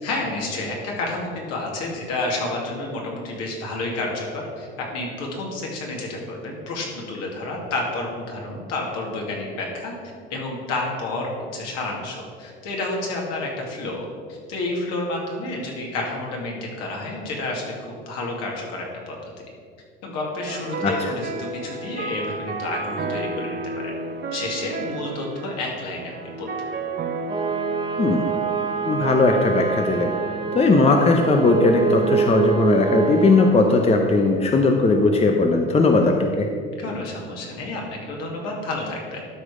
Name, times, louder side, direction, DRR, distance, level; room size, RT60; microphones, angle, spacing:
voice 1, 0.0-9.9 10.3-19.2 20.0-23.9 24.3-26.1 26.4-26.7 36.8-37.8 38.1-39.3, left 2 dB, 60° left, -1 dB, 2.5 m, -30 dB
sound 1, 20.4-35.4, right 3 dB, 35° right, 1.3 m, -34 dB
voice 2, 20.8-21.1 28.0-28.3 28.9-30.1 30.5-36.5, left 3 dB, 20° left, 3 dB, 0.8 m, -18 dB
sound 2, 27.3-33.5, right 6 dB, 15° right, 1.2 m, -26 dB
12.5 x 5.0 x 5.0 m, 2.2 s
hypercardioid pair, 75°, 29 cm